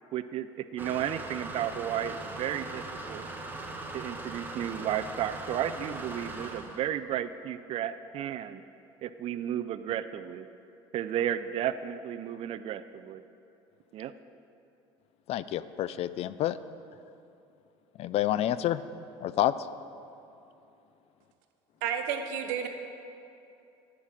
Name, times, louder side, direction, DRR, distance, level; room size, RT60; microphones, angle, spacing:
voice 1, 0.1-3.3 3.9-8.6 9.0-10.5 10.9-13.2 13.9-14.1, right 10 dB, 50° right, 0.4 m, -33 dB
sound 1, 0.8-6.8, right 2 dB, 15° right, 1.2 m, -40 dB
voice 2, 15.3-16.6 18.0-18.8 19.2-19.5, left 13 dB, 55° left, 0.4 m, -28 dB
voice 3, 21.8-22.7, right 8 dB, 80° right, 1.1 m, -31 dB
10.5 x 5.9 x 8.7 m
supercardioid pair, 100°, 13 cm